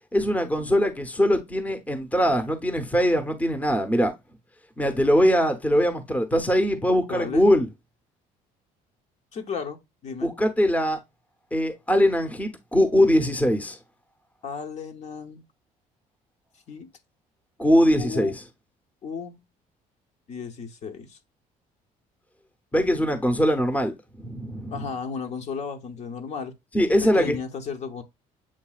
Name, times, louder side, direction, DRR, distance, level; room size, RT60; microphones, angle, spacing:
voice 1, 0.1-4.1 4.8-7.7 10.2-11.0 11.5-13.8 17.6-18.3 22.7-24.9 26.7-27.4, equal, 10° left, 0.8 m, -22 dB
voice 2, 7.1-7.5 9.3-10.3 14.4-15.4 16.7-16.9 17.9-18.3 19.0-19.4 20.3-21.2 24.7-26.5 27.0-28.0, left 6 dB, 45° left, 0.9 m, -34 dB
7.3 x 2.6 x 2.3 m
cardioid pair, 105°, 15 cm